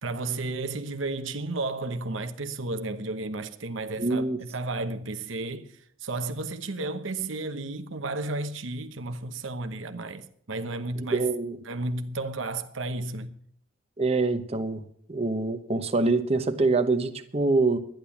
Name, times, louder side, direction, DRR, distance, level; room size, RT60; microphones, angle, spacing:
voice 1, 0.0-5.7 6.0-11.3 11.6-13.3, right 2 dB, 70° right, 1.0 m, -33 dB
voice 2, 4.0-4.4 11.1-11.6 14.0-14.8 15.1-17.8, right 3 dB, 30° right, 1.0 m, -25 dB
12.0 x 10.5 x 7.1 m
head